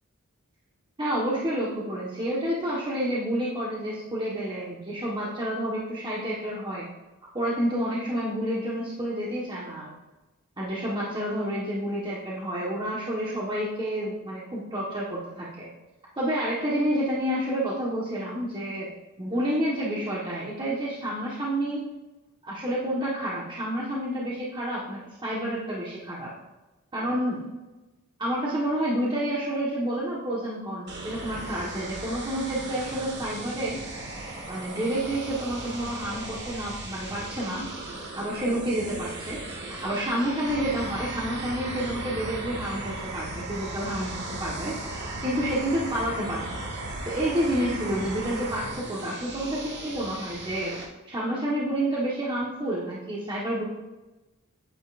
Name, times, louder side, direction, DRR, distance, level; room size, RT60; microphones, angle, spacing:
voice 1, 1.0-6.9 7.3-9.9 10.6-15.7 16.2-18.9 19.2-22.0 22.4-26.3 26.9-27.4 28.2-33.8 34.5-37.7 38.1-39.4 39.7-44.8 45.2-46.7 47.0-50.8 51.0-53.6, right 1 dB, 20° right, -6 dB, 1.4 m, -29 dB
sound 1, 30.9-50.8, right 2 dB, 50° right, 1.8 m, -39 dB
sound 2, 40.4-48.8, right 2 dB, 90° right, 2.5 m, -37 dB
9.2 x 9.1 x 2.6 m, 1.1 s
head